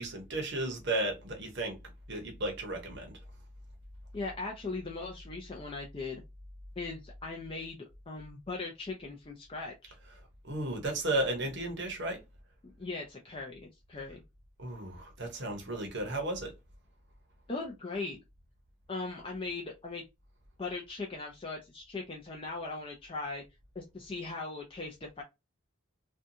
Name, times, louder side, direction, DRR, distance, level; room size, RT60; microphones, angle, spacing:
voice 1, 0.0-1.8 2.1-3.2 10.4-12.2 14.6-16.5, right 2 dB, 55° right, 0.8 m, -34 dB
voice 2, 4.1-6.2 6.8-7.8 8.1-9.9 12.6-14.2 17.5-18.2 18.9-20.0 20.6-23.4 23.8-25.2, left 3 dB, 25° left, 0.4 m, -39 dB
2.6 x 2.3 x 2.6 m
head